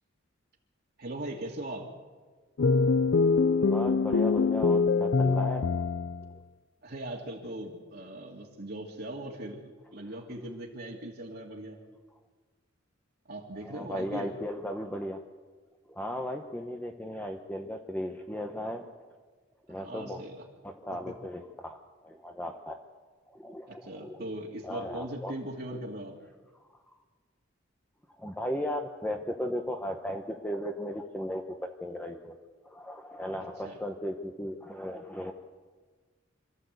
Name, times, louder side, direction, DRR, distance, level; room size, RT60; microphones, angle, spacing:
voice 1, 1.0-2.0 6.8-11.8 13.3-14.3 19.7-20.4 21.1-21.2 23.7-26.2 33.6-33.8, right 1 dB, 55° right, -2 dB, 2.3 m, -39 dB
sound 1, 2.6-6.3, left 4 dB, 65° left, 0.6 m, -24 dB
voice 2, 3.6-5.7 6.3-6.4 13.5-15.2 15.9-18.9 19.7-20.2 20.6-22.8 23.3-24.2 24.6-25.3 28.2-32.4 32.6-35.3, equal, 10° left, 3 dB, 1.1 m, -36 dB
26.5 x 13.5 x 8.1 m, 1.4 s
head